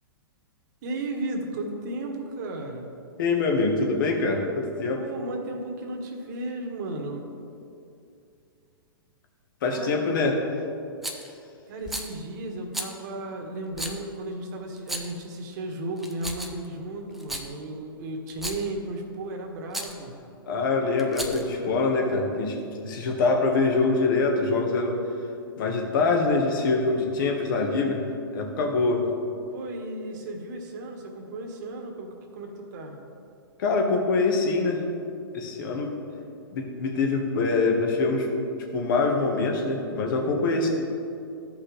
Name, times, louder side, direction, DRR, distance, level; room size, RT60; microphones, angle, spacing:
voice 1, 0.8-2.9 5.0-7.2 9.7-10.0 11.7-20.1 29.5-33.0, right 2 dB, 50° right, 2 dB, 1.5 m, -34 dB
voice 2, 3.2-5.0 9.6-10.4 20.5-22.5 22.8-25.0 25.6-28.0 28.3-29.1 33.6-34.8 35.3-35.9 36.5-38.3 38.7-40.7, left 3 dB, 55° left, 2 dB, 1.5 m, -24 dB
Rattle, 11.0-11.3 11.8-12.1 12.7-12.9 13.7-14.0 14.8-15.2 16.0-16.7 17.1-17.5 18.3-18.7 19.7-19.9 21.0-21.5, right 1 dB, ahead, 0.6 m, -34 dB
13.5 x 5.4 x 3.4 m, 2.6 s
hypercardioid pair, 130°, 13 cm